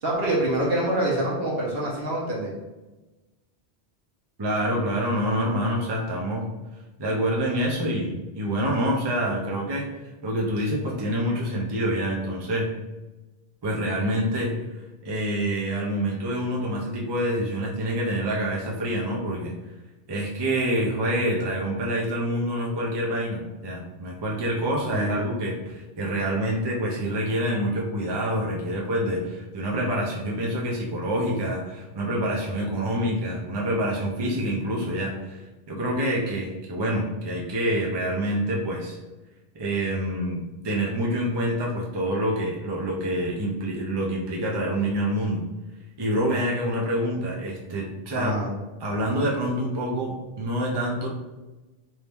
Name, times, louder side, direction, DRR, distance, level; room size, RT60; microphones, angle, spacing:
voice 1, 0.0-2.5 24.9-25.2 48.1-48.5, right 1 dB, 70° right, -4 dB, 1.3 m, -26 dB
voice 2, 4.4-6.5 7.0-9.9 10.2-12.7 13.6-14.5 15.0-19.5 20.1-39.0 39.5-45.4 46.0-48.3 48.8-51.1, equal, 30° right, -2 dB, 0.6 m, -27 dB
3.1 x 2.7 x 3.4 m, 1.1 s
omnidirectional pair, 1.1 m